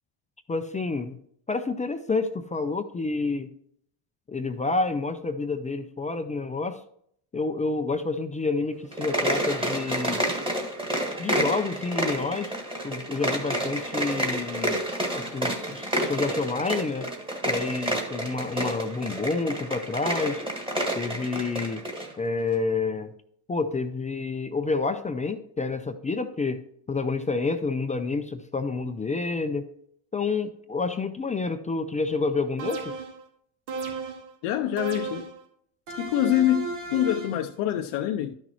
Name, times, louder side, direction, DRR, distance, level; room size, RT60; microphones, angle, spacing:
voice 1, 0.5-1.2 1.5-3.5 4.3-6.8 7.3-10.2 11.2-12.5 12.8-14.8 15.1-17.1 17.5-20.4 21.0-21.8 22.2-23.1 23.5-26.6 26.9-29.7 30.1-33.0, left 3 dB, 15° left, 0.4 m, -29 dB
sound 1, 8.9-22.1, right 1 dB, 10° right, 1.6 m, -29 dB
sound 2, 32.6-33.2 33.7-34.3 34.8-35.4 35.9-37.5, right 4 dB, 75° right, 2.2 m, -34 dB
voice 2, 34.4-35.3 36.0-38.4, left 12 dB, 70° left, 0.7 m, -25 dB
11.5 x 6.2 x 3.0 m
cardioid pair, 110°, 49 cm